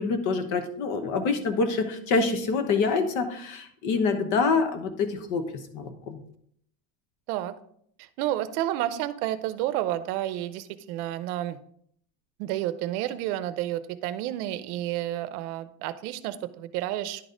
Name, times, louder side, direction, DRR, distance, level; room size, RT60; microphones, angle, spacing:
voice 1, 0.0-5.4 5.7-6.2, left 4 dB, 40° left, 8 dB, 1.0 m, -26 dB
voice 2, 8.0-11.6 12.4-17.2, right 13 dB, 65° right, 13 dB, 0.8 m, -30 dB
10.5 x 4.1 x 5.0 m, 0.67 s
cardioid pair, 175°, 48 cm